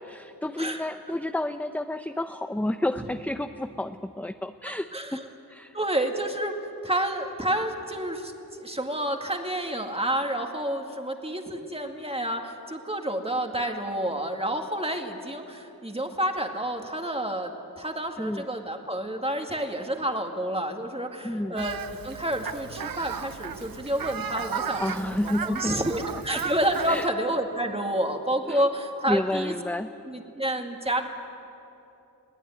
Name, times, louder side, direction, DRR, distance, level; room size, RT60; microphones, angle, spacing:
voice 1, 0.0-5.2 5.5-5.8 18.2-18.5 21.2-21.7 24.8-25.8 26.3-26.4 26.9-27.1 28.5-28.7 29.1-29.9, left 1 dB, 5° left, 8 dB, 0.6 m, -30 dB
voice 2, 4.7-5.3 5.7-6.5 6.8-8.3 8.6-29.5 30.1-31.1, right 1 dB, 15° right, 4 dB, 2.1 m, -29 dB
Fowl, 21.6-27.1, right 7 dB, 70° right, 0.6 m, -35 dB
21.5 x 17.0 x 9.4 m, 2.9 s
wide cardioid pair, 60°, 37 cm